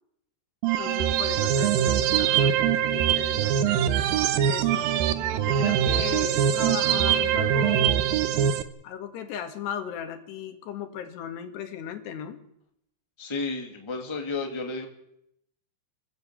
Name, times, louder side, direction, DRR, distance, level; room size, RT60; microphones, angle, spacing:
sound 1, 0.6-8.6, right 9 dB, 70° right, 2.5 m, -23 dB
voice 1, 0.8-3.9 4.5-4.9 5.4-8.0 8.8-12.4, left 8 dB, 75° left, 6 dB, 3.9 m, -36 dB
voice 2, 13.2-14.9, left 3 dB, 10° left, 2 dB, 2.0 m, -32 dB
26.0 x 16.0 x 8.5 m, 0.79 s
omnidirectional pair, 4.9 m